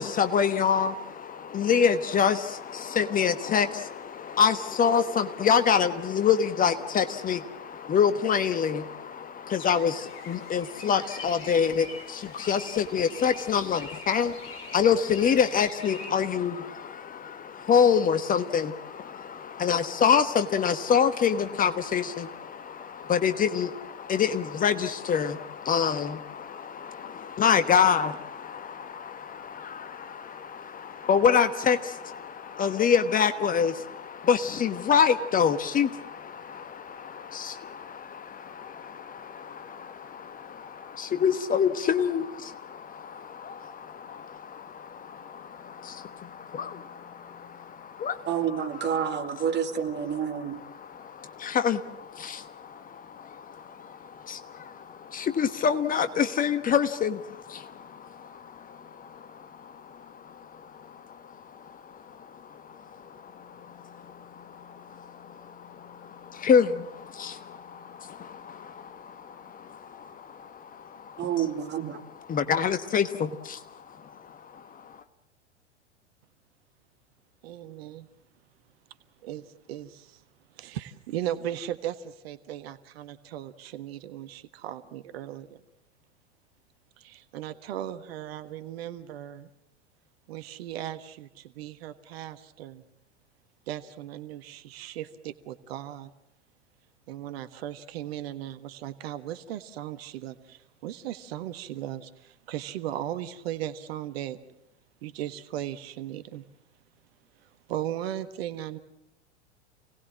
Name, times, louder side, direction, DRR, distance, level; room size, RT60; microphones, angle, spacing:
voice 1, 0.0-48.3 50.7-71.2 72.3-75.0, left 7 dB, 25° left, 1.3 m, -27 dB
sound 1, 9.6-16.1, left 3 dB, 45° left, 5.5 m, -45 dB
voice 2, 48.2-50.6 71.2-72.0, right 8 dB, 30° right, 2.5 m, -29 dB
voice 3, 77.4-78.1 79.2-80.2 80.5-85.6 87.0-89.5 90.3-92.8 93.7-96.1 97.1-104.4 105.0-106.4 107.4-108.8, right 12 dB, 60° right, 1.5 m, -37 dB
28.5 x 19.0 x 7.5 m
figure-of-eight pair, 95°, 35 cm